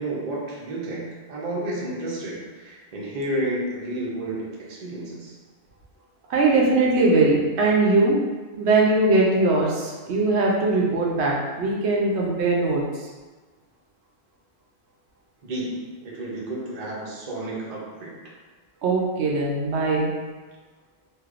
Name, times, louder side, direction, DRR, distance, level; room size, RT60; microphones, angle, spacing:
voice 1, 0.0-5.4 15.4-18.2, right 1 dB, 45° right, -4 dB, 0.7 m, -31 dB
voice 2, 6.3-8.2 8.6-12.8 18.8-20.1, right 2 dB, 80° right, -2 dB, 0.9 m, -20 dB
3.2 x 2.6 x 2.4 m, 1.3 s
omnidirectional pair, 1.1 m